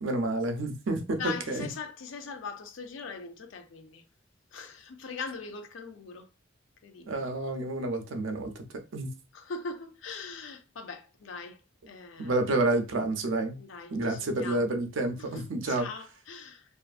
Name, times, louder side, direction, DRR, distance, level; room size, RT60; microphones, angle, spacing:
voice 1, 0.0-1.7 7.1-8.6 8.9-9.1 12.2-13.6 13.9-15.9, right 2 dB, 80° right, 0.5 m, -29 dB
voice 2, 1.2-4.0 4.5-6.3 6.8-7.2 9.3-11.6 11.9-12.4 13.6-14.7 15.3-16.6, left 4 dB, 80° left, 0.5 m, -41 dB
2.5 x 2.4 x 2.4 m
head